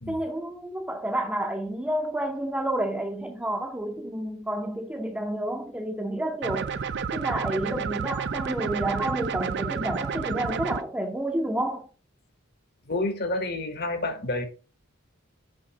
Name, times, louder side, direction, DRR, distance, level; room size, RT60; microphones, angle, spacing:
voice 1, 0.1-6.8 7.1-11.9, right 1 dB, 5° right, 0.7 m, -30 dB
sound 1, 6.4-10.8, right 6 dB, 55° right, 0.5 m, -30 dB
voice 2, 12.9-14.5, left 2 dB, 50° left, 1.2 m, -29 dB
6.4 x 5.3 x 4.0 m
head